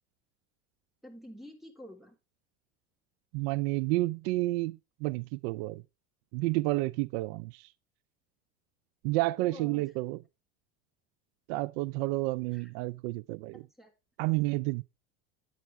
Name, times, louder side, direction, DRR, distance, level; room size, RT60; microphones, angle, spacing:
voice 1, 1.0-2.1 9.4-9.9 12.5-12.7 13.8-13.9, equal, ahead, 3.2 m, -48 dB
voice 2, 3.3-5.8 6.3-7.7 9.0-10.2 11.5-13.7 14.2-14.8, right 20 dB, 70° right, 0.5 m, -30 dB
10.0 x 8.7 x 3.3 m
supercardioid pair, 105°, 33 cm